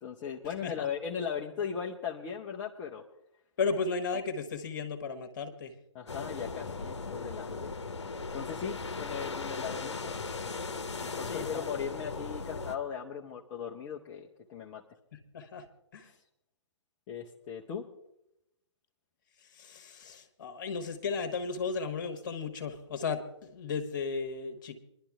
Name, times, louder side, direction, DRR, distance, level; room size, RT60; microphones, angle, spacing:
voice 1, 0.0-3.0 5.9-7.7 8.3-10.1 11.0-14.8 17.1-17.9, left 7 dB, 15° left, -1 dB, 0.5 m, -38 dB
voice 2, 3.6-5.7 11.3-11.7 15.1-15.7 15.9-16.1 19.4-24.8, left 4 dB, 40° left, 7 dB, 1.4 m, -35 dB
sound 1, 6.1-12.8, left 4 dB, 65° left, 0.9 m, -38 dB
26.0 x 11.5 x 2.3 m, 0.82 s
figure-of-eight pair, 130°, 15 cm